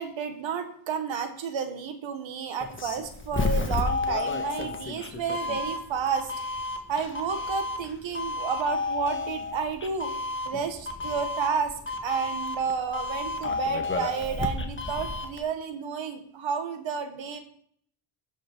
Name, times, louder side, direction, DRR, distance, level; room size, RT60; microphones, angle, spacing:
voice 1, 0.0-6.3 6.9-10.1 10.4-11.7 12.0-17.4, right 6 dB, 65° right, 8 dB, 1.5 m, -31 dB
Doorbell, 2.6-15.4, left 3 dB, 25° left, 1.4 m, -31 dB
12.0 x 5.6 x 4.5 m, 0.63 s
cardioid pair, 85°, 49 cm